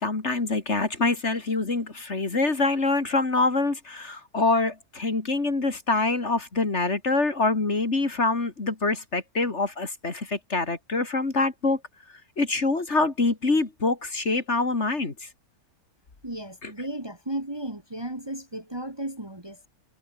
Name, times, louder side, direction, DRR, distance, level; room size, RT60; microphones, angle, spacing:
voice 1, 0.0-11.8 12.4-15.3 16.6-16.7, left 3 dB, 45° left, 3.0 m, -25 dB
voice 2, 16.2-19.7, right 1 dB, 15° right, 2.0 m, -34 dB
omnidirectional pair, 1.6 m